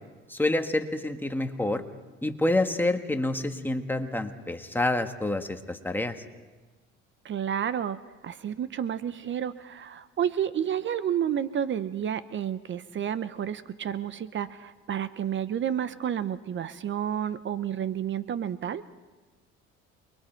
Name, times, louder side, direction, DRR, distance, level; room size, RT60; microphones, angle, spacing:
voice 1, 0.3-1.8 2.2-6.1, left 2 dB, 5° left, 6 dB, 1.5 m, -28 dB
voice 2, 7.2-18.8, right 9 dB, 40° right, 14 dB, 0.7 m, -30 dB
28.5 x 22.5 x 4.5 m, 1.2 s
cardioid pair, 100°, 29 cm